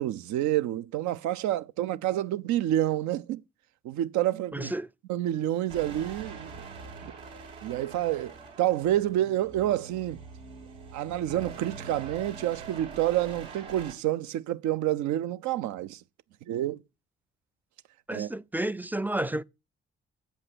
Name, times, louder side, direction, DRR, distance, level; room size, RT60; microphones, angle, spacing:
voice 1, 0.0-3.4 3.8-4.7 5.1-6.5 7.0-7.1 7.6-10.2 10.9-16.0 16.5-16.8 18.1-18.3, right 13 dB, 65° right, 0.6 m, -28 dB
voice 2, 4.5-4.9 18.1-19.4, right 1 dB, 5° right, 0.4 m, -31 dB
sound 1, 5.7-13.9, right 4 dB, 85° right, 2.5 m, -44 dB
7.6 x 5.3 x 6.1 m
hypercardioid pair, 40°, 31 cm